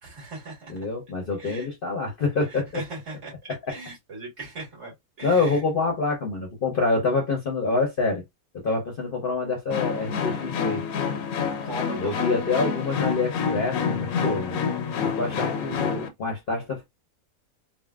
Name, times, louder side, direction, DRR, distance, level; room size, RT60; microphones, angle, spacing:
voice 1, 0.0-0.9 1.4-1.7 2.5-3.3 3.7-5.6 11.6-12.6, right 2 dB, 50° right, 1.9 m, -38 dB
voice 2, 0.7-2.8 3.5-3.8 5.2-8.2 8.5-10.8 11.9-14.6 15.0-16.8, left 3 dB, 50° left, 0.7 m, -26 dB
sound 1, 9.7-16.1, left 6 dB, 75° left, 1.0 m, -28 dB
3.6 x 2.1 x 2.2 m
omnidirectional pair, 1.5 m